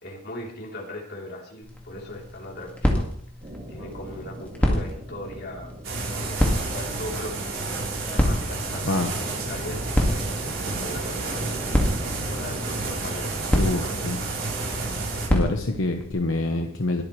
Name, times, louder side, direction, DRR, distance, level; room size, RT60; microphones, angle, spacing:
voice 1, 0.0-3.1 3.7-5.7 6.2-7.5 8.0-11.5 12.3-14.0, left 1 dB, 50° left, -2 dB, 3.5 m, -39 dB
sound 1, 1.6-16.1, equal, 5° left, 1.9 m, -29 dB
sound 2, 3.4-15.9, right 1 dB, 35° right, 2.5 m, -40 dB
sound 3, 5.8-15.3, right 3 dB, 90° right, 3.8 m, -31 dB
voice 2, 13.5-14.2 15.3-17.0, left 2 dB, 75° left, 4 dB, 1.0 m, -26 dB
22.5 x 8.9 x 3.2 m, 0.65 s
head